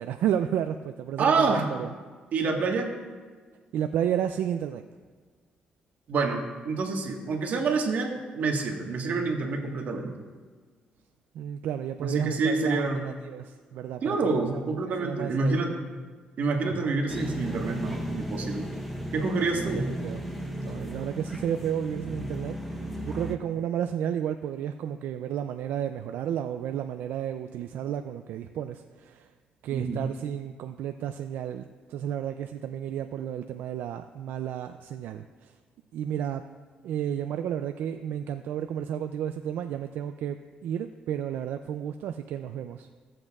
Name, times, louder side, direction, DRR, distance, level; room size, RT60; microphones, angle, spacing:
voice 1, 0.0-1.9 3.7-4.8 11.3-14.6 15.0-15.6 16.6-16.9 19.4-19.5 19.7-20.3 20.6-22.6 23.0-29.3 29.6-35.5 35.9-36.4 36.8-42.9, right 9 dB, 85° right, 8 dB, 0.3 m, -32 dB
voice 2, 1.2-1.7 2.3-2.9 6.1-10.1 12.0-13.1 14.0-15.8 16.4-18.7 19.1-19.9 29.7-30.1, right 4 dB, 60° right, 1 dB, 1.4 m, -27 dB
sound 1, 17.1-23.4, equal, ahead, 1.0 m, -35 dB
16.5 x 7.6 x 2.4 m, 1.5 s
cardioid pair, 100°, 3 cm